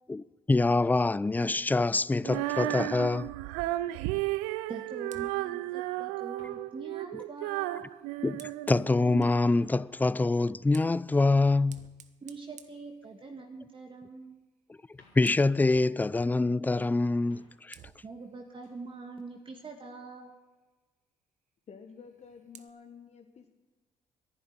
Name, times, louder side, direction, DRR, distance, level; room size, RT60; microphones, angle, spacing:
voice 1, 0.1-3.3 8.2-11.8 15.2-17.8, left 3 dB, 10° left, 0.4 m, -25 dB
Female singing, 2.2-9.3, right 17 dB, 75° right, 0.5 m, -34 dB
sound 1, 3.6-5.6 5.9-8.7 9.0-13.3 13.5-14.5 14.8-16.6 17.0-17.9 18.2-18.9 19.3-19.6, left 2 dB, 85° left, 3.7 m, -66 dB
voice 2, 4.7-7.8 12.2-14.4 18.0-20.4, right 3 dB, 35° right, 1.7 m, -44 dB
Fire, 5.0-9.5 10.4-13.6 14.0-14.3 14.6-15.7 17.0-17.2 17.7-20.0 21.9-22.7, right 9 dB, 55° right, 0.9 m, -57 dB
voice 3, 21.7-23.5, left 6 dB, 50° left, 1.4 m, -50 dB
11.0 x 10.0 x 9.5 m
hypercardioid pair, 50°, 15 cm